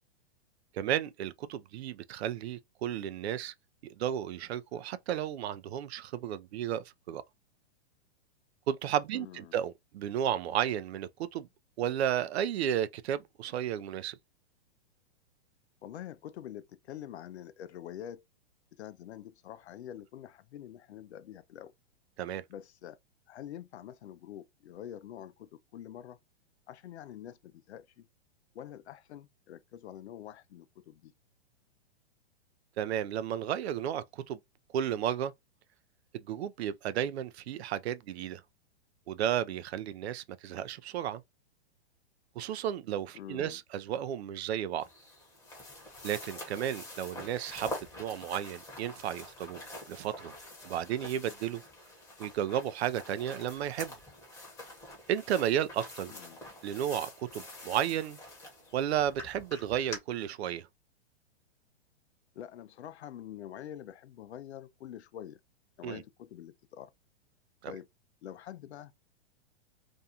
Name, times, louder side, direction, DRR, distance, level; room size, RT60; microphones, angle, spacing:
voice 1, 0.7-3.5 3.8-7.2 8.7-11.5 11.8-14.2 22.2-22.4 32.8-34.4 34.7-35.3 36.1-38.4 39.1-41.2 42.4-44.9 46.0-49.6 49.9-50.3 50.6-51.6 52.2-53.9 55.1-56.1 56.6-58.2 58.7-60.7 65.8-66.0 67.6-67.7, right 10 dB, 75° right, 0.5 m, -33 dB
voice 2, 9.1-9.5 15.8-18.2 18.7-21.7 22.5-23.0 23.3-26.2 26.7-28.1 28.5-31.1 43.1-43.6 56.1-56.4 62.3-65.4 65.8-66.9 67.7-67.9 68.2-68.9, left 11 dB, 90° left, 0.5 m, -46 dB
sound 1, 44.8-60.0, left 1 dB, 10° left, 0.9 m, -46 dB
2.6 x 2.2 x 2.7 m
hypercardioid pair, 145°, 32 cm